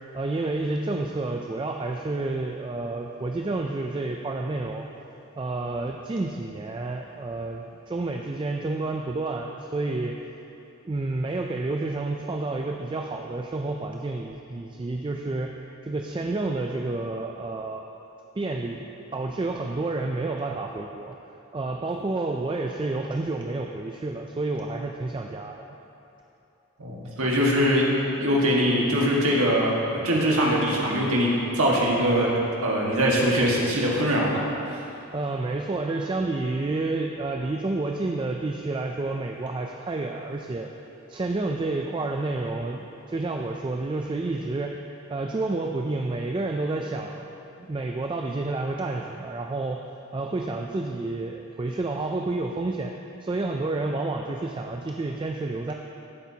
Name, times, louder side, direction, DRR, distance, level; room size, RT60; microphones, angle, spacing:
voice 1, 0.1-4.9 5.4-10.2 10.8-15.5 15.8-17.8 18.4-18.8 19.1-21.2 21.5-25.8 35.1-40.7 41.1-44.8 45.1-47.3 47.6-49.8 50.1-52.9 53.2-55.7, right 2 dB, 25° right, 2 dB, 0.3 m, -29 dB
voice 2, 26.8-27.9 28.2-29.7 30.0-32.3 32.6-34.4 34.7-34.8, equal, 80° right, -3 dB, 1.7 m, -22 dB
14.0 x 8.3 x 2.8 m, 2.9 s
head